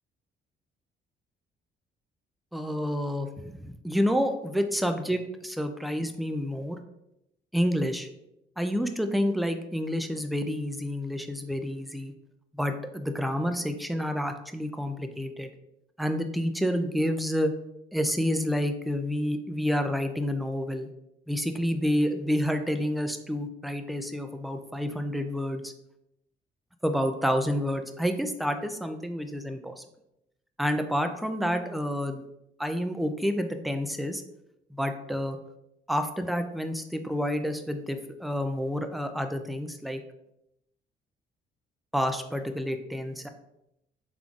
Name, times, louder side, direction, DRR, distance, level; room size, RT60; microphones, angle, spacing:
voice 1, 2.5-6.8 7.5-8.1 8.6-12.1 12.5-15.5 16.0-17.5 17.9-20.9 21.3-25.7 26.8-29.8 30.6-32.2 32.6-34.2 34.7-35.4 35.9-40.0 41.9-43.3, equal, ahead, 7 dB, 0.3 m, -29 dB
3.7 x 3.5 x 2.3 m, 0.83 s
cardioid pair, 90°, 20 cm